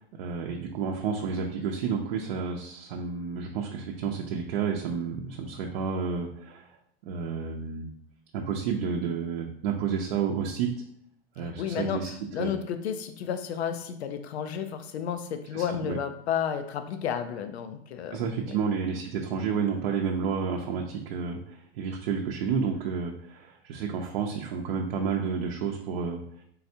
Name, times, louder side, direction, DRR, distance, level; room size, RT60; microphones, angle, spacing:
voice 1, 0.0-6.7 7.1-7.9 8.3-10.7 11.4-12.1 12.4-12.5 15.5-16.0 18.1-26.2, right 6 dB, 60° right, 1 dB, 0.6 m, -30 dB
voice 2, 11.4-12.0 12.3-18.6, left 8 dB, 90° left, 8 dB, 0.5 m, -32 dB
3.9 x 3.3 x 2.7 m, 0.70 s
supercardioid pair, 140°, 31 cm